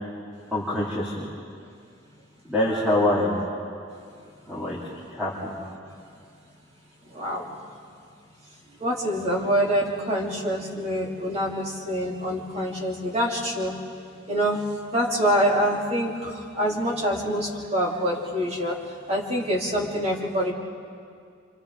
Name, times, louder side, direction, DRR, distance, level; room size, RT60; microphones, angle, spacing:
voice 1, 0.5-1.3 2.5-3.4 4.5-4.8 5.1-5.6, left 1 dB, 5° right, -7 dB, 3.4 m, -25 dB
voice 2, 7.1-7.6 8.8-13.7 14.3-14.6 14.9-18.8 19.1-20.5, equal, 35° right, -3 dB, 3.2 m, -26 dB
29.5 x 26.5 x 3.9 m, 2.2 s
head